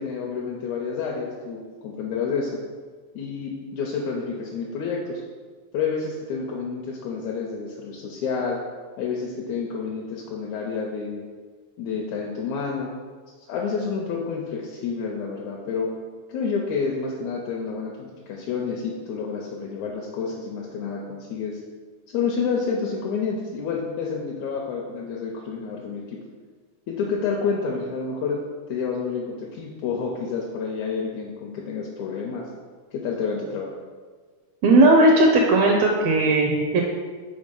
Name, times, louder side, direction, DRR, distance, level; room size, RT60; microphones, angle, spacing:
voice 1, 0.0-2.6 3.2-5.2 5.7-8.6 9.0-11.3 11.8-12.9 13.5-15.9 16.3-21.6 22.1-26.2 26.9-28.4 28.7-32.5 32.9-33.7, left 5 dB, 75° left, -2 dB, 1.9 m, -29 dB
voice 2, 34.6-36.8, right 2 dB, 80° right, 1 dB, 1.6 m, -17 dB
5.3 x 4.0 x 5.2 m, 1.5 s
omnidirectional pair, 3.5 m